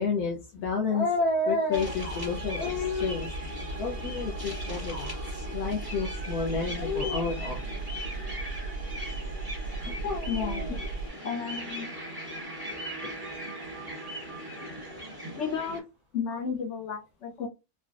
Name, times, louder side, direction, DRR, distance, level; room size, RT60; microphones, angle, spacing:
voice 1, 0.0-3.3 3.8-5.1 5.5-7.6 9.9-10.8 12.5-12.6 13.0-14.7, left 4 dB, 80° left, -1 dB, 1.2 m, -30 dB
sound 1, 1.7-15.8, equal, 15° right, 1.2 m, -40 dB
sound 2, 1.7-11.1, right 3 dB, 90° right, 1.2 m, -37 dB
voice 2, 10.3-10.8 11.2-12.0 15.4-15.8 16.1-17.5, left 6 dB, 65° left, 5 dB, 0.8 m, -33 dB
Wind instrument woodwind instrument, 11.2-15.2, right 6 dB, 65° right, 1.2 m, -47 dB
3.8 x 2.1 x 2.4 m, 0.26 s
omnidirectional pair, 1.5 m